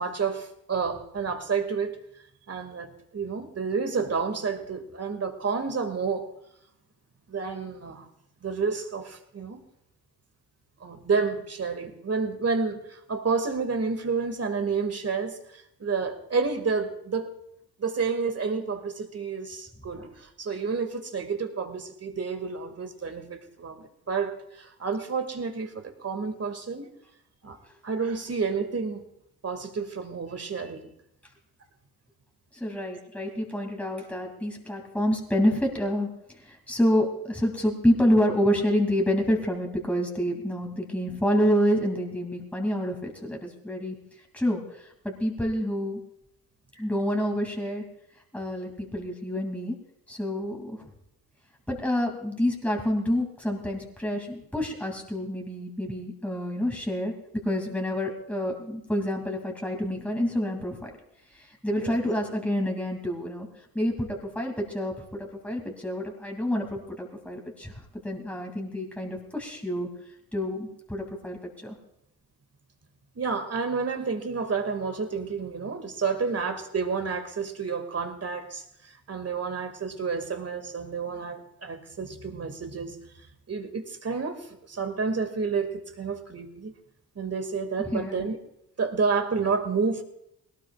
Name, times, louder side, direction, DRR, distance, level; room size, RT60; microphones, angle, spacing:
voice 1, 0.0-2.0 2.5-6.3 7.3-8.1 8.4-9.6 10.8-17.3 17.8-26.9 27.4-27.6 27.8-29.0 29.4-30.9 46.7-46.8 61.8-62.0 73.2-83.0 83.5-85.7 86.0-86.7 87.2-88.4 88.8-90.0, right 5 dB, 40° right, 6 dB, 2.1 m, -30 dB
voice 2, 32.5-44.0 44.3-46.0 46.8-47.8 48.3-49.8 50.1-50.8 51.7-57.1 57.4-60.9 61.3-63.5 63.7-69.9 70.3-71.8 87.8-88.3, equal, 5° left, 1 dB, 2.6 m, -28 dB
20.0 x 18.0 x 2.4 m, 0.79 s
supercardioid pair, 65°, 39 cm